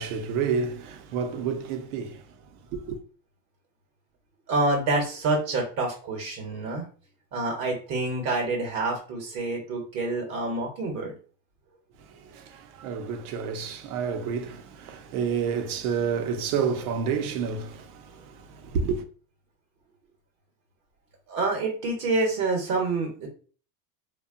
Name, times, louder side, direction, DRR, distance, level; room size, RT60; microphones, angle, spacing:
voice 1, 0.0-3.0 12.0-19.0, right 6 dB, 75° right, 0.7 m, -30 dB
voice 2, 4.5-6.9 7.3-11.1 21.3-23.3, right 2 dB, 45° right, 0.8 m, -27 dB
2.8 x 2.2 x 2.4 m
supercardioid pair, 125°, 44 cm